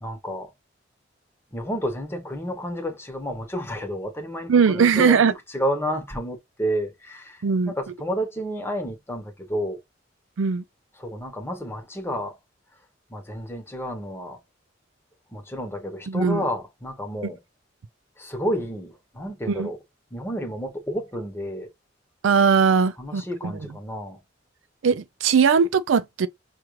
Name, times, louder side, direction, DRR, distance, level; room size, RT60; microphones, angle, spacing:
voice 1, 0.0-0.5 1.5-5.2 5.5-9.8 11.0-12.4 13.1-14.4 15.3-17.4 18.2-19.8 20.1-21.7 23.0-24.2, equal, 15° left, 0.9 m, -30 dB
voice 2, 4.5-5.3 7.4-7.7 10.4-10.6 16.1-16.4 19.5-19.7 22.2-23.7 24.8-26.3, right 6 dB, 90° right, 0.4 m, -20 dB
5.7 x 2.4 x 3.1 m
head